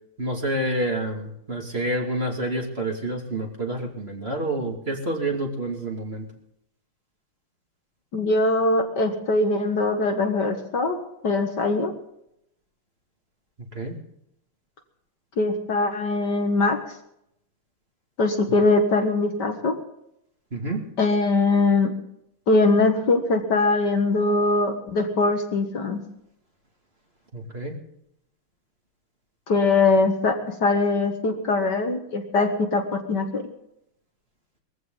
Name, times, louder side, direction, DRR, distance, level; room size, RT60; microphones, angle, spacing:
voice 1, 0.2-6.2 13.7-13.9 20.5-20.8 27.3-27.7, right 1 dB, 30° right, 1 dB, 2.5 m, -28 dB
voice 2, 8.1-11.0 11.2-11.9 15.4-16.8 18.2-19.7 21.0-21.9 22.5-26.0 29.5-33.4, left 3 dB, 50° left, 4 dB, 2.0 m, -22 dB
21.0 x 15.0 x 3.9 m, 0.77 s
omnidirectional pair, 2.4 m